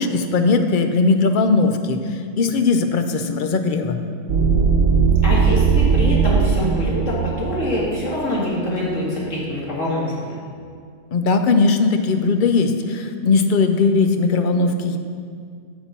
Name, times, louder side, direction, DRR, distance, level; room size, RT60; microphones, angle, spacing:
voice 1, 0.0-4.0 11.1-15.0, left 4 dB, 55° left, 7 dB, 0.6 m, -19 dB
sound 1, 4.3-8.8, right 5 dB, 90° right, 1.2 m, -18 dB
voice 2, 5.2-10.1, left 1 dB, 70° left, -6 dB, 2.4 m, -24 dB
9.6 x 4.5 x 7.0 m, 2.1 s
omnidirectional pair, 1.3 m